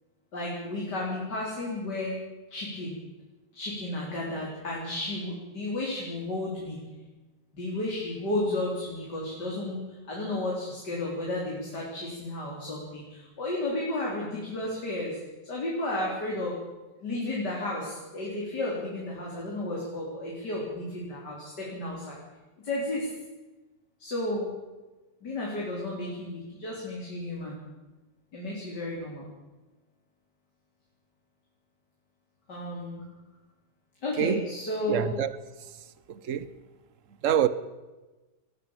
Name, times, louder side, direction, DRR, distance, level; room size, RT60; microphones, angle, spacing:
voice 1, 0.3-2.2 2.5-3.0 3.5-6.8 7.5-16.5 17.0-22.2 22.6-23.1 24.0-24.5 25.2-27.6 28.3-29.3 32.5-33.0 34.0-35.2, left 1 dB, 65° left, 5.0 m, -33 dB
voice 2, 34.9-35.3 36.1-36.5 37.2-37.5, right 9 dB, 50° right, 1.3 m, -25 dB
21.0 x 15.0 x 9.1 m
omnidirectional pair, 2.0 m